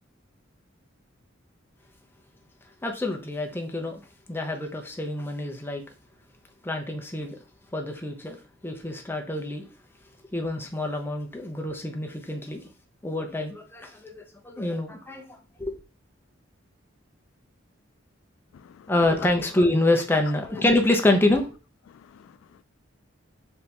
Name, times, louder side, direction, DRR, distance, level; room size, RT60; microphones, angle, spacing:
voice 1, 2.8-4.0 4.3-5.8 6.6-7.4 7.7-8.4 8.6-9.6 10.3-12.6 13.0-15.2 15.6-15.8 18.9-21.6, left 2 dB, 10° left, 0.7 m, -26 dB
voice 2, 18.5-18.9 21.9-22.6, left 7 dB, 85° left, 0.3 m, -53 dB
4.4 x 2.8 x 3.3 m
head